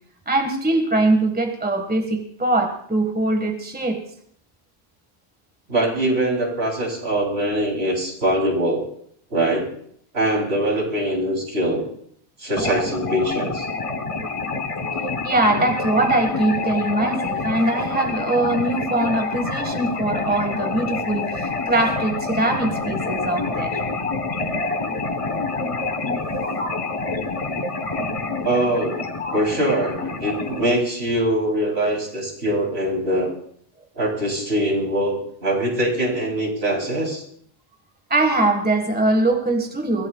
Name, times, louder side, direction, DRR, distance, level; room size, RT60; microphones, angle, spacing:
voice 1, 0.2-4.0 15.2-23.8 38.1-40.1, right 2 dB, 10° right, 4 dB, 1.5 m, -22 dB
voice 2, 5.7-8.9 9.3-9.7 10.1-11.8 12.4-13.7 28.4-29.0 29.3-33.3 34.0-37.2, right 1 dB, 70° right, -1 dB, 3.6 m, -22 dB
sound 1, 12.6-30.7, left 3 dB, 30° left, 1.2 m, -27 dB
24.0 x 16.0 x 2.3 m, 0.65 s
omnidirectional pair, 1.1 m